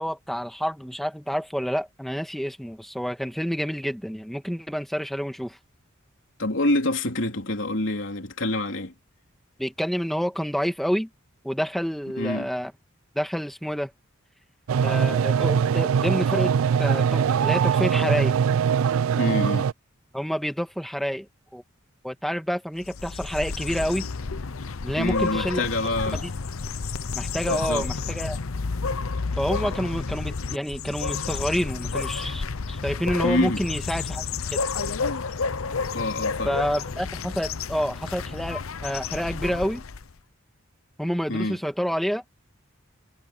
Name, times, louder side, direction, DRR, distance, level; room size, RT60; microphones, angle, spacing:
voice 1, 0.0-5.6 9.6-11.1 11.4-12.7 13.2-13.9 14.8-16.5 16.8-18.4 20.1-21.3 21.5-21.6 22.0-24.1 24.8-25.7 26.1-26.3 27.1-28.4 29.3-34.6 36.4-39.8 41.0-42.2, equal, ahead, 1.8 m, -28 dB
voice 2, 6.4-8.9 12.2-12.5 19.2-19.7 25.0-26.2 27.5-27.9 33.2-33.6 35.9-36.6 41.3-41.6, left 1 dB, 65° left, 3.7 m, -26 dB
sound 1, 14.7-19.7, right 7 dB, 80° right, 0.3 m, -22 dB
sound 2, 22.8-40.1, left 4 dB, 85° left, 0.8 m, -30 dB
head